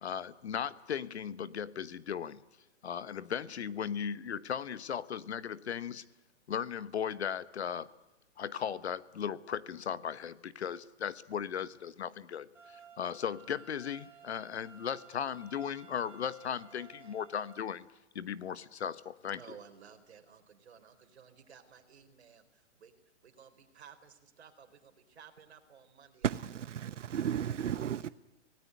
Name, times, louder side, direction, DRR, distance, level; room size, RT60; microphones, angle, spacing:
voice 1, 0.0-2.4 2.8-6.0 6.5-7.9 8.4-17.9 18.1-19.4, left 8 dB, 60° left, 1.2 m, -37 dB
sound 1, 12.5-17.5, right 5 dB, 5° right, 2.9 m, -56 dB
voice 2, 19.4-22.9 23.2-26.3 26.9-27.7, right 7 dB, 60° right, 4.0 m, -56 dB
voice 3, 26.2-28.1, right 9 dB, 75° right, 1.0 m, -34 dB
26.5 x 18.5 x 9.6 m
hypercardioid pair, 175°, 37 cm